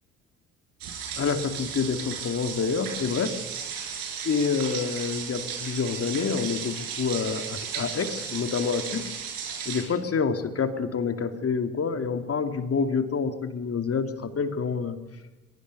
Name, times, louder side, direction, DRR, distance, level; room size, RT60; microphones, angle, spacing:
sound 1, 0.8-9.8, right 7 dB, 60° right, 5.5 m, -35 dB
voice 1, 1.2-3.3 4.2-9.0 9.7-15.0, left 5 dB, 40° left, 8 dB, 2.6 m, -27 dB
22.5 x 22.5 x 6.9 m, 1.1 s
hypercardioid pair, 55°, 38 cm